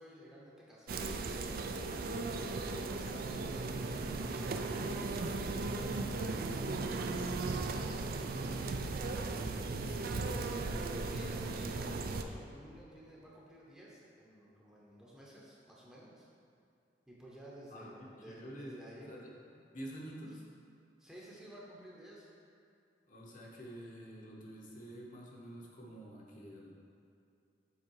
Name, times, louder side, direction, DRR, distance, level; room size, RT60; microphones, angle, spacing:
voice 1, 0.0-1.9 2.8-3.7 4.4-6.1 6.9-9.1 9.6-10.4 10.7-16.3 17.1-19.2 21.0-22.3, right 1 dB, 5° right, -6 dB, 0.8 m, -53 dB
sound 1, 0.9-12.2, right 3 dB, 55° right, 0.4 m, -37 dB
voice 2, 9.9-10.2 17.7-17.9 18.3-20.4 23.1-26.7, equal, 45° left, -3 dB, 0.9 m, -48 dB
7.3 x 3.6 x 4.6 m, 2.5 s
head